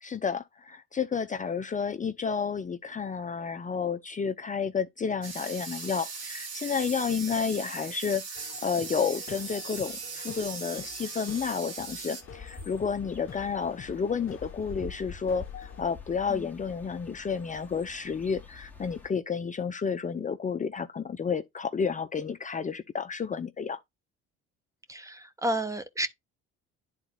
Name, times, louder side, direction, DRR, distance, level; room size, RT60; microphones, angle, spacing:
voice 1, 0.0-23.8, left 6 dB, 25° left, 0.6 m, -31 dB
sound 1, 5.2-12.2, right 5 dB, 55° right, 2.3 m, -39 dB
sound 2, 8.4-15.8, left 7 dB, 40° left, 1.0 m, -48 dB
sound 3, 12.2-19.1, left 4 dB, 5° left, 1.5 m, -46 dB
voice 2, 24.9-26.1, right 1 dB, 10° right, 0.9 m, -31 dB
11.0 x 4.0 x 2.4 m
supercardioid pair, 75°, 31 cm